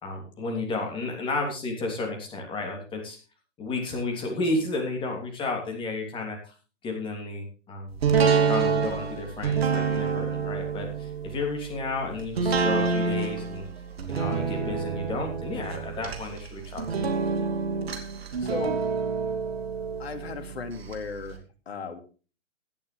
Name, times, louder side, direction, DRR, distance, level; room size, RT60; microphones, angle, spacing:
voice 1, 0.0-3.2 3.6-6.5 6.8-8.0 8.4-13.7 14.1-17.1, left 2 dB, 15° left, 2 dB, 3.1 m, -32 dB
sound 1, 8.0-20.9 21.3-21.4, right 5 dB, 55° right, 2.6 m, -27 dB
voice 2, 18.4-18.8 20.0-22.0, left 5 dB, 55° left, 9 dB, 2.3 m, -36 dB
16.0 x 11.0 x 3.3 m, 0.35 s
figure-of-eight pair, 120°, 37 cm